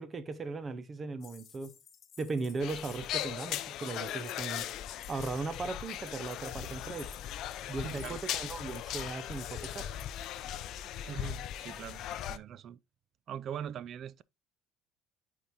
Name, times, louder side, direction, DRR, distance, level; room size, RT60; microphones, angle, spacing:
voice 1, 0.0-1.8 2.2-4.7 5.1-7.1 7.7-9.9, right 3 dB, 25° right, 0.7 m, -38 dB
sound 1, 1.2-10.7, left 8 dB, 35° left, 1.0 m, -56 dB
sound 2, 2.6-12.4, left 11 dB, 55° left, 0.5 m, -39 dB
voice 2, 7.8-8.2 11.0-12.0 12.3-12.8 13.3-14.2, right 9 dB, 40° right, 0.3 m, -41 dB
8.9 x 4.7 x 2.7 m
cardioid pair, 160°, 0 cm